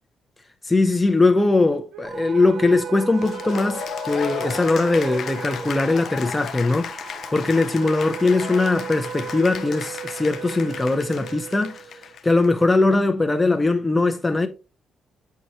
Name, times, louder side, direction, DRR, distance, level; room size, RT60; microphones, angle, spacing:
voice 1, 0.6-11.8 12.2-14.5, left 3 dB, 15° left, 0.6 m, -20 dB
sound 1, 1.9-12.3, right 9 dB, 70° right, 0.5 m, -37 dB
sound 2, 2.0-9.4, right 4 dB, 50° right, 1.1 m, -41 dB
Cheering / Applause, 3.2-12.7, left 8 dB, 60° left, 0.5 m, -35 dB
7.7 x 4.6 x 2.7 m
cardioid pair, 90°, 0 cm